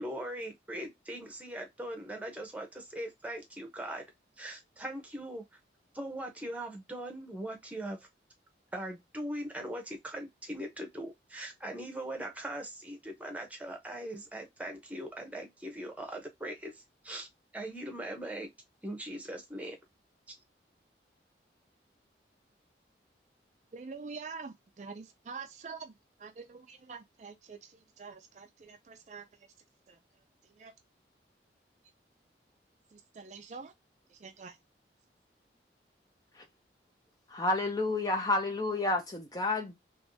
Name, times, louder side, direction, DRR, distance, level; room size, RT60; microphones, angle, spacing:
voice 1, 0.0-4.0 4.4-5.6 5.9-8.1 8.7-17.3 17.5-18.5 18.8-19.8 20.3-20.4, right 1 dB, 10° right, 0.9 m, -40 dB
voice 2, 23.7-25.9 26.2-29.2 29.9-30.0 30.6-30.7 32.9-33.7 34.2-34.6, right 5 dB, 40° right, 0.4 m, -46 dB
voice 3, 37.3-39.7, left 2 dB, 20° left, 0.5 m, -30 dB
3.4 x 3.0 x 2.6 m
head